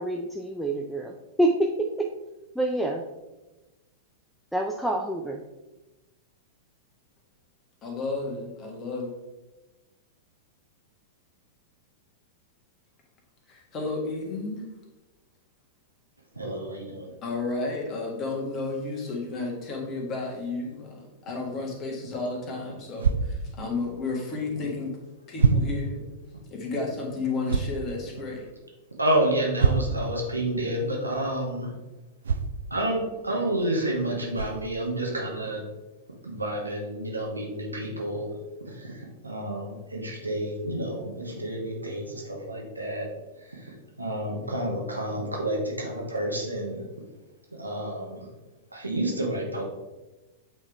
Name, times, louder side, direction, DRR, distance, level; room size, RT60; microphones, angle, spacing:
voice 1, 0.0-2.1 2.6-3.0 4.5-5.4, right 1 dB, ahead, 2 dB, 0.4 m, -27 dB
voice 2, 7.8-9.1 13.5-14.7 17.2-25.0 25.3-26.1 26.5-28.5, left 3 dB, 30° left, 0 dB, 1.7 m, -32 dB
voice 3, 16.3-17.1 29.0-31.7 32.7-35.6 36.2-38.3 38.6-43.1 43.4-46.9 47.5-48.3 48.7-49.6, right 1 dB, 85° right, 0 dB, 1.3 m, -30 dB
sound 1, 23.0-23.2 24.6-24.7 25.4-25.7 27.5-27.8 29.6-30.0 32.2-32.5 33.6-33.7 34.3-34.6, right 5 dB, 70° right, 0.4 m, -23 dB
8.4 x 3.5 x 3.4 m, 1.1 s
figure-of-eight pair, 95°, 0 cm